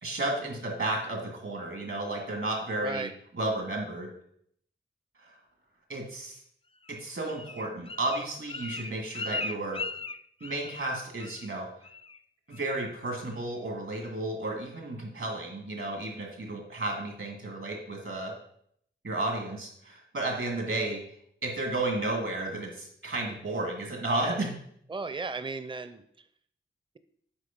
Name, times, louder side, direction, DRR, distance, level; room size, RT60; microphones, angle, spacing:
voice 1, 0.0-3.1 3.3-4.1 5.2-5.4 5.9-6.4 6.9-9.8 10.4-11.7 12.5-18.3 19.0-21.0 21.4-24.6, right 2 dB, 70° right, 0 dB, 2.5 m, -33 dB
voice 2, 2.8-3.1 24.9-26.2, right 3 dB, 25° right, 10 dB, 0.6 m, -35 dB
Bird, 6.8-10.9 11.2-11.6 11.8-12.2 12.5-12.9 13.3-13.4, left 3 dB, 25° left, 0.4 m, -38 dB
8.9 x 4.5 x 5.4 m, 0.69 s
wide cardioid pair, 55°, 21 cm